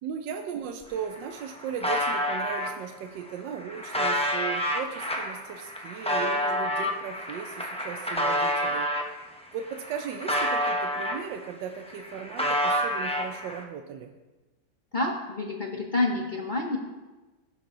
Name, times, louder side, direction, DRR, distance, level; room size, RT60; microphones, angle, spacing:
voice 1, 0.0-14.1, right 7 dB, 80° right, 5 dB, 1.3 m, -37 dB
sound 1, 0.8-0.9 1.1-2.7 3.3-9.1 9.6-11.5 11.8-13.6, equal, 10° left, 0.4 m, -29 dB
voice 2, 14.9-16.8, left 2 dB, 35° left, 0 dB, 0.8 m, -28 dB
16.5 x 6.7 x 3.8 m, 1.2 s
omnidirectional pair, 2.0 m